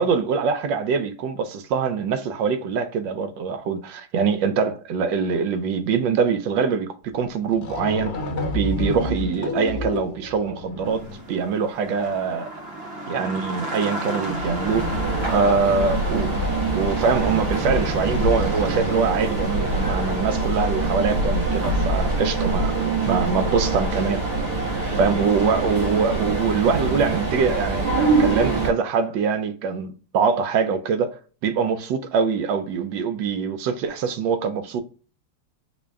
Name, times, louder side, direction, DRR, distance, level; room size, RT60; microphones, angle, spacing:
voice 1, 0.0-8.1 8.5-12.5 13.1-14.9 15.2-16.4 16.7-24.2 25.0-34.8, right 5 dB, 70° right, 1.1 m, -24 dB
sound 1, 7.2-7.3 7.5-11.3, left 2 dB, 45° left, 1.0 m, -29 dB
sound 2, 10.8-21.3, right 1 dB, 45° right, 0.8 m, -34 dB
sound 3, 14.2-28.7, right 2 dB, 90° right, 2.4 m, -24 dB
5.0 x 2.2 x 3.4 m
omnidirectional pair, 2.4 m